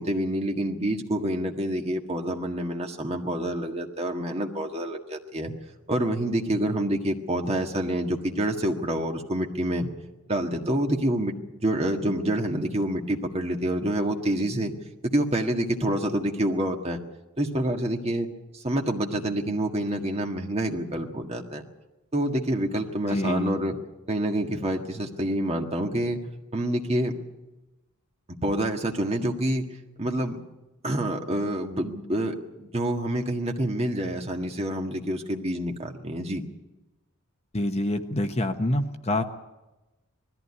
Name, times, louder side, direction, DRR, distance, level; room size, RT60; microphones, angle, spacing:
voice 1, 0.0-5.5 5.9-9.9 10.3-11.3 11.6-14.7 15.0-17.0 17.4-18.3 18.5-21.6 22.1-23.8 24.1-26.2 26.5-27.1 28.4-29.7 30.0-30.4 30.8-36.4, right 1 dB, 30° right, 2 dB, 1.7 m, -27 dB
voice 2, 23.1-23.6 37.5-39.2, left 1 dB, 30° left, 7 dB, 1.0 m, -26 dB
20.0 x 14.5 x 9.8 m, 1.0 s
head